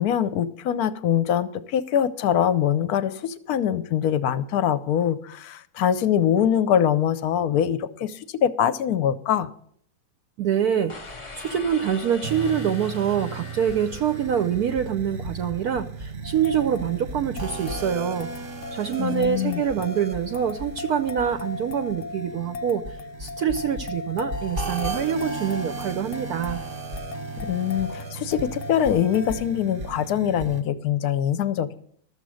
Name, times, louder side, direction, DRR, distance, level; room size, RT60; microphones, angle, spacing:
voice 1, 0.0-9.5 19.0-19.6 27.4-31.7, left 9 dB, 65° left, 14 dB, 0.9 m, -23 dB
voice 2, 10.4-11.0 11.3-18.3 18.7-22.8 23.2-26.6, right 8 dB, 70° right, 9 dB, 0.9 m, -25 dB
sound 1, 10.9-15.1, left 4 dB, 35° left, 0.4 m, -42 dB
sound 2, 12.2-30.6, right 3 dB, 40° right, 0.9 m, -36 dB
sound 3, 16.2-29.6, left 4 dB, 85° left, 0.6 m, -38 dB
13.0 x 7.4 x 6.3 m, 0.64 s
omnidirectional pair, 2.1 m